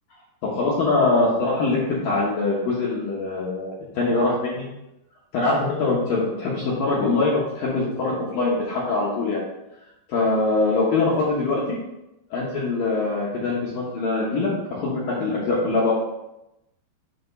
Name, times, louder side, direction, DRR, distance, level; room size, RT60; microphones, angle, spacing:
voice 1, 0.4-4.7 5.3-9.4 10.1-11.8 12.3-15.9, left 3 dB, 70° left, -6 dB, 2.2 m, -23 dB
7.7 x 3.6 x 5.4 m, 0.92 s
omnidirectional pair, 5.4 m